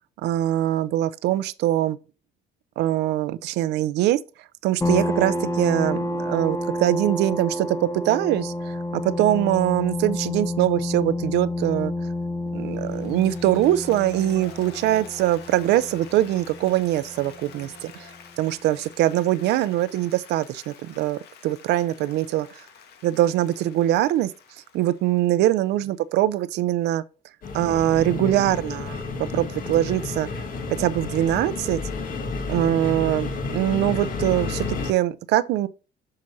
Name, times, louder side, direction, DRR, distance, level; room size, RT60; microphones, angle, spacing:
voice 1, 0.2-2.0 2.8-4.2 4.6-11.9 12.5-18.1 18.4-22.5 23.0-24.3 24.7-27.0 27.5-29.0 29.3-30.3 30.7-31.8 32.5-35.7, right 13 dB, 80° right, 0.6 m, -23 dB
sound 1, 4.8-18.1, left 1 dB, 15° left, 0.8 m, -30 dB
Applause, 12.7-25.9, left 7 dB, 75° left, 1.4 m, -48 dB
sound 2, 27.4-34.9, left 4 dB, 55° left, 1.7 m, -31 dB
7.7 x 5.8 x 2.7 m
cardioid pair, 110°, 17 cm